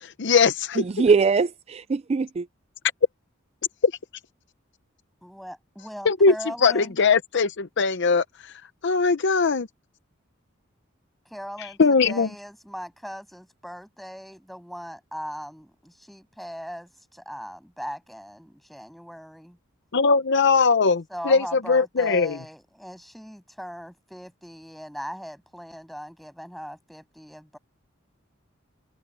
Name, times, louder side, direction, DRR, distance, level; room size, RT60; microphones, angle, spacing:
voice 1, 0.0-0.8 3.8-3.9 6.1-6.3 6.6-8.5 8.8-9.7 11.8-12.3 19.9-22.4, left 4 dB, 60° left, 0.7 m, -20 dB
voice 2, 0.8-2.5, right 4 dB, 30° right, 0.4 m, -22 dB
voice 3, 5.2-7.0 11.3-11.8 12.0-19.6 21.1-27.6, equal, ahead, 7.3 m, -39 dB
head